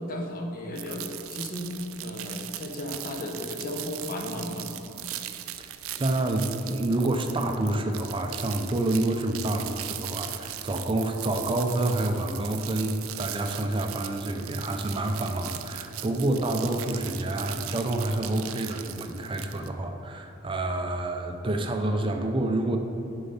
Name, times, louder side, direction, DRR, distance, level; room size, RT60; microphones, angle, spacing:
voice 1, 0.0-4.7, left 1 dB, 45° left, 2 dB, 0.9 m, -35 dB
sound 1, 0.8-19.7, right 12 dB, 90° right, 0.4 m, -39 dB
voice 2, 6.0-22.8, right 1 dB, 25° right, 4 dB, 0.5 m, -28 dB
6.7 x 5.4 x 5.6 m, 2.8 s
head